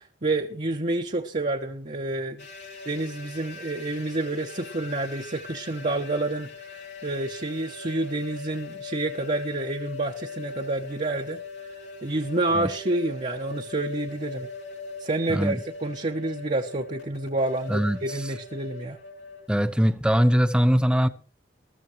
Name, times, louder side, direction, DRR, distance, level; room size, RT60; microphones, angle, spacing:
voice 1, 0.0-2.5 2.8-14.5 15.0-19.0, right 2 dB, 40° right, 2 dB, 0.9 m, -29 dB
sound 1, 2.4-19.5, left 4 dB, 70° left, 3.5 m, -41 dB
voice 2, 17.7-18.0 19.5-21.1, equal, 5° right, 12 dB, 0.7 m, -21 dB
21.0 x 13.5 x 3.1 m, 0.36 s
head